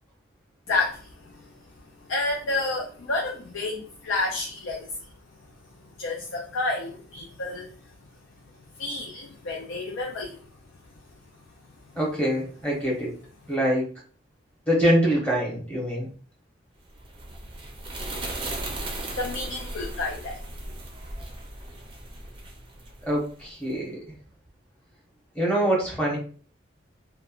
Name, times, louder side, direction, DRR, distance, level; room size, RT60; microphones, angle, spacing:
voice 1, 0.7-1.5 2.1-4.9 6.0-7.7 8.8-10.4 18.9-20.4, left 2 dB, 85° left, 0 dB, 0.5 m, -30 dB
voice 2, 11.9-13.1 13.5-13.9 14.7-16.1 23.0-24.0 25.3-26.2, equal, 5° left, -4 dB, 0.9 m, -24 dB
sound 1, 16.9-23.5, right 2 dB, 25° right, 0.4 m, -37 dB
3.0 x 2.1 x 2.4 m, 0.42 s
head